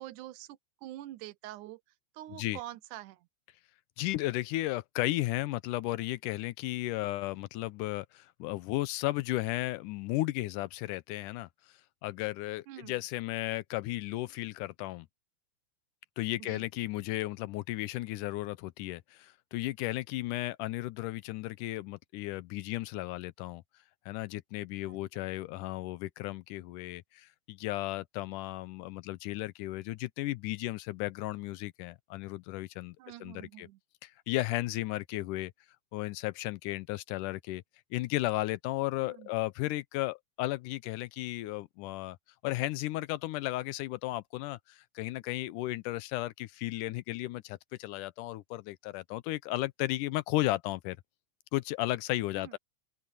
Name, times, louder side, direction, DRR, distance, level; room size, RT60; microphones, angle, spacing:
voice 1, 0.0-1.8 2.2-3.2 12.7-13.0 16.4-16.7 24.9-25.0 33.0-33.8 39.0-39.3 52.4-52.5, right 14 dB, 80° right, 2.2 m, -45 dB
voice 2, 2.3-2.6 4.0-11.5 12.0-15.1 16.2-23.6 24.1-33.7 34.0-35.5 35.9-37.6 37.9-42.2 42.4-51.0 51.5-52.6, left 17 dB, 90° left, 2.2 m, -34 dB
omnidirectional pair, 3.6 m